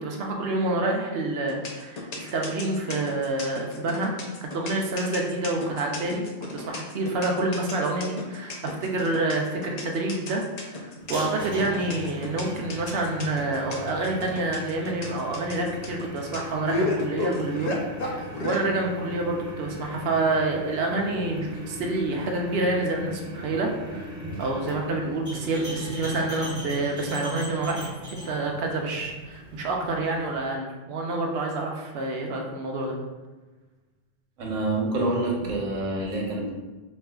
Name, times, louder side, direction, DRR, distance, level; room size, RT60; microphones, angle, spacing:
voice 1, 0.0-4.1 4.4-6.2 6.5-17.8 18.0-24.1 24.4-33.0, right 2 dB, 65° right, 0 dB, 0.7 m, -28 dB
sound 1, 1.5-18.6, left 2 dB, 65° left, 0.4 m, -33 dB
sound 2, 11.0-30.4, equal, 20° right, 0.6 m, -38 dB
voice 2, 34.4-36.6, right 2 dB, 85° right, -2 dB, 1.1 m, -27 dB
4.3 x 2.4 x 2.3 m, 1.2 s
omnidirectional pair, 1.3 m